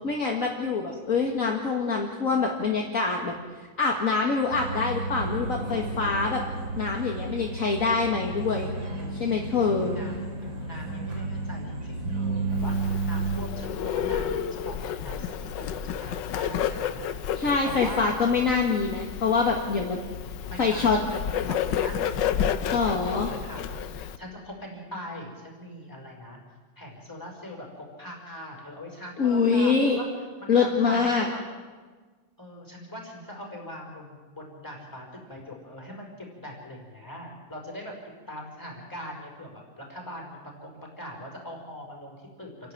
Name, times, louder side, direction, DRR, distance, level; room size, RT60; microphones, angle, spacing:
voice 1, 0.0-3.3 3.8-6.4 6.8-8.7 9.1-10.0 17.3-20.0 20.6-21.0 22.7-23.3 29.2-30.0 30.5-31.3, left 4 dB, 45° left, 1 dB, 2.1 m, -25 dB
sound 1, 4.5-13.4, right 3 dB, 90° right, 3.9 m, -32 dB
voice 2, 8.9-9.2 9.8-17.1 17.3-18.1 20.1-22.3 22.5-23.9 24.2-26.4 26.8-30.1 30.4-31.4 32.4-37.9 38.3-42.7, left 1 dB, 10° left, -1 dB, 5.3 m, -41 dB
Bird, 12.6-24.2, left 8 dB, 75° left, 1.5 m, -31 dB
28.5 x 11.5 x 9.3 m, 1.4 s
omnidirectional pair, 2.0 m